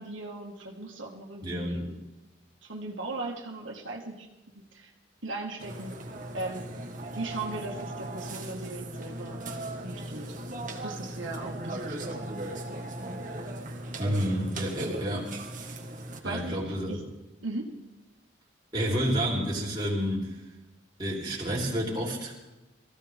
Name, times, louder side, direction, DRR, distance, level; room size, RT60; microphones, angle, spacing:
voice 1, 0.0-2.0 2.6-4.3 4.5-4.9 5.2-6.0 6.3-6.6 7.1-9.4 9.8-10.3 10.8-12.4 14.9-15.2 16.2-17.0 17.4-17.7, right 2 dB, 80° right, -1 dB, 2.1 m, -38 dB
voice 2, 1.4-1.9 14.0-15.3 16.2-17.0 18.7-20.3 21.0-22.3, equal, 20° right, -5 dB, 3.8 m, -29 dB
Burping eructation, 5.6-16.2, right 1 dB, 40° right, 1.8 m, -38 dB
23.0 x 15.5 x 3.7 m, 1.0 s
head